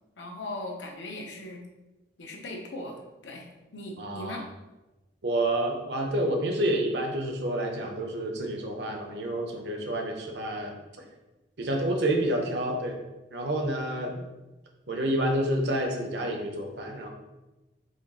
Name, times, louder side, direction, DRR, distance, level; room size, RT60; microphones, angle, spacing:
voice 1, 0.2-1.6 2.2-3.0 3.2-3.5 3.7-4.4, left 1 dB, 75° left, 1 dB, 0.8 m, -38 dB
voice 2, 4.0-4.4 5.2-10.8 11.6-13.0 13.3-14.2 14.9-17.1, right 1 dB, 65° right, 2 dB, 0.7 m, -29 dB
4.9 x 2.4 x 4.1 m, 1.1 s
head